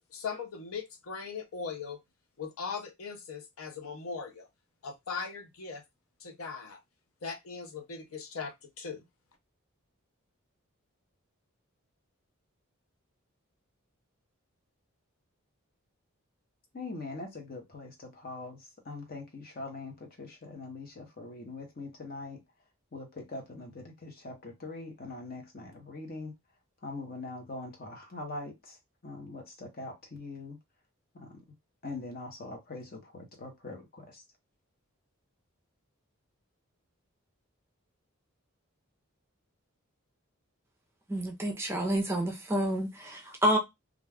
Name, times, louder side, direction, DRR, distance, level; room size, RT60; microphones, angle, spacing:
voice 1, 0.0-2.0 2.4-4.5 4.8-5.8 6.2-6.8 7.2-9.0, left 5 dB, 75° left, 0.6 m, -39 dB
voice 2, 16.7-22.4 22.9-26.3 26.8-28.8 29.0-30.6 31.1-31.3 31.8-34.2, left 2 dB, 40° left, 0.8 m, -42 dB
voice 3, 41.1-43.6, right 1 dB, 10° right, 0.5 m, -29 dB
2.4 x 2.2 x 3.3 m
head